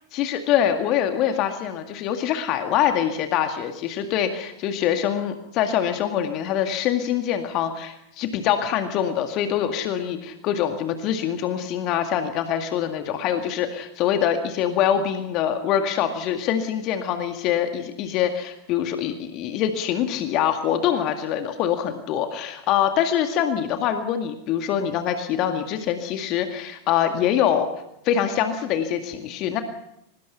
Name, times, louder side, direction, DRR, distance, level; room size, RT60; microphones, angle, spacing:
voice 1, 0.1-27.7 28.0-29.6, left 9 dB, 40° left, 6 dB, 2.0 m, -24 dB
23.5 x 20.0 x 5.8 m, 0.79 s
figure-of-eight pair, 90°, 0 cm